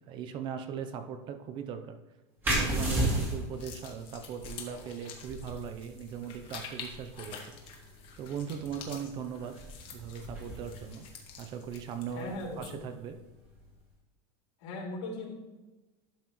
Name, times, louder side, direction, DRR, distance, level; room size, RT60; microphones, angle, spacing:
voice 1, 0.0-2.0 2.5-7.6 8.2-9.6 9.9-11.1 11.4-13.2, right 7 dB, 30° right, 8 dB, 0.6 m, -39 dB
sound 1, 2.4-13.7, right 1 dB, 15° right, 2.0 m, -36 dB
sound 2, 3.5-12.9, left 6 dB, 35° left, 1.2 m, -48 dB
voice 2, 12.1-12.8 14.6-15.3, left 2 dB, 80° left, -2 dB, 3.0 m, -38 dB
11.5 x 5.6 x 3.1 m, 1.1 s
supercardioid pair, 165°, 15 cm